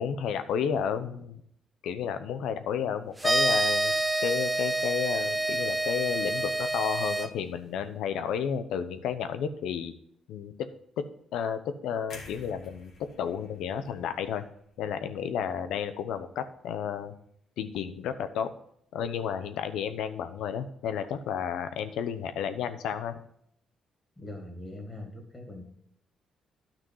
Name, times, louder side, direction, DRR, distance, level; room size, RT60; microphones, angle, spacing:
voice 1, 0.0-1.4 1.8-3.9 4.2-9.9 10.3-10.7 11.0-11.1 11.3-14.4 14.8-17.1 17.6-18.5 18.9-23.2, left 8 dB, 85° left, 10 dB, 0.8 m, -32 dB
sound 1, 3.2-7.3, right 2 dB, 10° right, 0.8 m, -27 dB
sound 2, 12.1-16.1 16.5-16.7, left 3 dB, 65° left, 2.3 m, -51 dB
voice 2, 24.2-25.6, left 1 dB, 15° left, 3 dB, 2.7 m, -41 dB
10.5 x 6.0 x 5.5 m, 0.71 s
cardioid pair, 90°, 0 cm